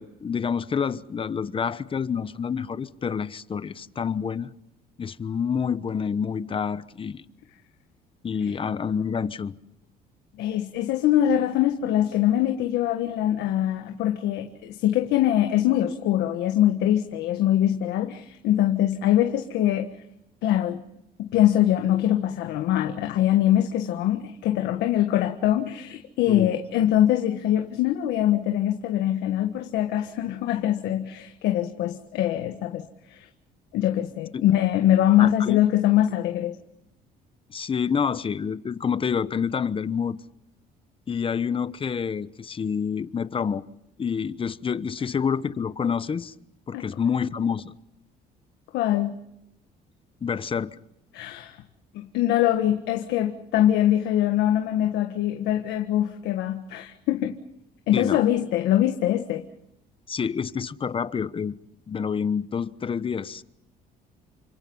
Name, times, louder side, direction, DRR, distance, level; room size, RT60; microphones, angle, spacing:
voice 1, 0.0-4.5 5.0-7.2 8.2-9.5 26.3-26.5 34.3-34.4 35.2-35.6 37.5-40.2 41.1-43.6 44.0-46.3 46.7-47.7 50.2-50.7 57.9-58.2 60.1-61.5 61.9-63.4, left 6 dB, 30° left, 1.1 m, -28 dB
voice 2, 10.4-20.0 20.4-20.8 21.2-33.3 33.7-36.6 46.7-46.9 48.7-49.2 51.1-51.6 52.1-57.4 57.9-59.4, left 12 dB, 85° left, 1.6 m, -23 dB
29.0 x 26.0 x 5.6 m
cardioid pair, 110°, 17 cm